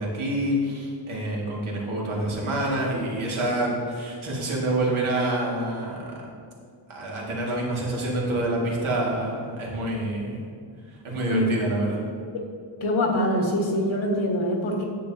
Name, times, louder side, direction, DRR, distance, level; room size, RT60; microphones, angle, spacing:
voice 1, 0.0-6.0 6.9-10.4 11.0-12.0, right 1 dB, 90° right, -4 dB, 2.1 m, -27 dB
voice 2, 12.8-14.8, left 1 dB, 80° left, 0 dB, 1.5 m, -24 dB
10.0 x 7.2 x 2.8 m, 2.2 s
wide cardioid pair, 175°, 47 cm